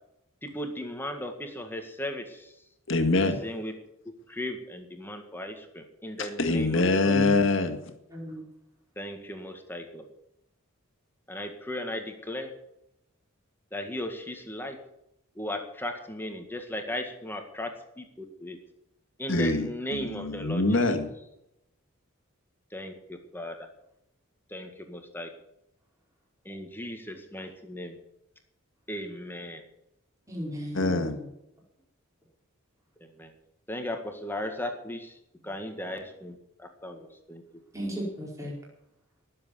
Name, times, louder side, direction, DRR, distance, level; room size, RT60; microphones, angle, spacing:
voice 1, 0.4-2.6 3.4-3.7 4.3-7.1 9.0-10.1 11.3-12.5 13.7-14.8 15.4-18.6 19.2-20.8 22.7-23.6 24.5-25.3 26.5-28.0 28.9-29.6 33.0-33.3 33.7-35.2 35.4-37.4, left 1 dB, 10° left, 5 dB, 1.8 m, -37 dB
voice 2, 2.9-3.5 6.2-7.8 19.3-21.1 30.7-31.2, left 2 dB, 60° left, 6 dB, 2.0 m, -25 dB
voice 3, 8.1-8.4 30.3-31.2 37.7-38.5, equal, 15° right, -3 dB, 4.8 m, -34 dB
19.0 x 7.7 x 7.1 m, 0.83 s
head